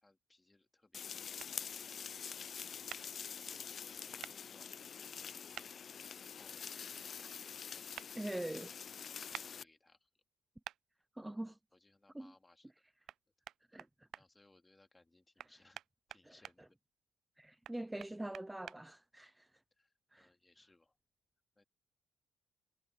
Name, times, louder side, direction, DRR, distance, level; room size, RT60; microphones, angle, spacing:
voice 1, 0.0-1.3 1.7-2.7 3.2-5.8 6.3-8.8 9.3-10.2 11.7-12.7 14.1-15.8 16.1-16.8 19.8-21.0 21.6-21.7, left 2 dB, 15° left, 2.6 m, -69 dB
sound 1, 0.9-9.6, left 7 dB, 50° left, 0.4 m, -46 dB
sound 2, 1.4-1.5 2.9-3.0 4.2-4.4 5.5-5.7 8.0-8.1 9.3-9.5 10.6-10.8 13.1-13.2 13.5-14.2 15.4-16.6 17.6-18.8, right 12 dB, 75° right, 0.3 m, -48 dB
voice 2, 8.2-8.7 11.2-11.6 12.1-12.3 13.7-14.1 17.4-19.5 20.1-20.3, right 1 dB, 10° right, 0.5 m, -43 dB
cardioid pair, 90°, 0 cm